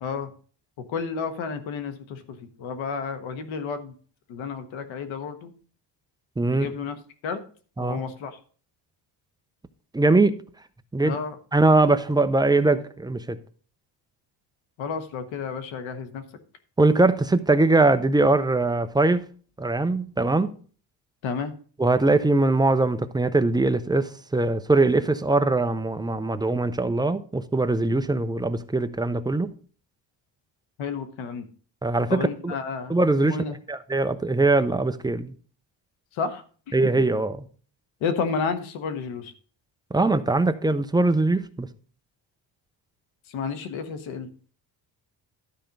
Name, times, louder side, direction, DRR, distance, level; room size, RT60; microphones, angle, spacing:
voice 1, 0.0-0.3 0.8-3.9 4.3-5.5 6.5-6.9 7.2-7.4 7.8-8.3 11.0-11.3 14.8-16.2 21.2-21.5 30.8-31.4 32.1-33.0 33.2-33.5 36.2-36.4 36.8-36.9 38.0-39.3 43.3-44.3, left 5 dB, 90° left, 1.4 m, -31 dB
voice 2, 6.4-6.7 7.8-8.0 9.9-10.3 10.9-11.2 11.5-13.4 16.8-19.2 19.6-20.5 21.8-29.5 31.8-32.5 32.9-35.3 36.7-37.4 39.9-41.7, right 2 dB, 10° right, 0.5 m, -21 dB
12.5 x 4.4 x 5.2 m
cardioid pair, 130°, 46 cm